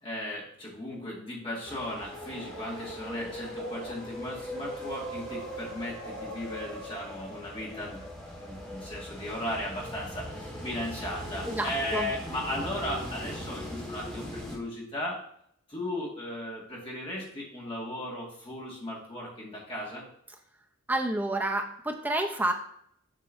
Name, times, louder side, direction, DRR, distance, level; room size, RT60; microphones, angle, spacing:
voice 1, 0.0-8.0 8.4-15.2 15.7-20.0, left 1 dB, 25° left, -4 dB, 1.8 m, -36 dB
sound 1, 1.7-14.6, equal, 5° left, 1.6 m, -40 dB
sound 2, 1.9-3.9 4.3-6.4, right 2 dB, 80° right, 1.2 m, -47 dB
voice 2, 11.5-12.1 20.9-22.5, right 1 dB, 10° right, 2 dB, 0.6 m, -29 dB
7.7 x 5.4 x 2.6 m, 0.71 s
head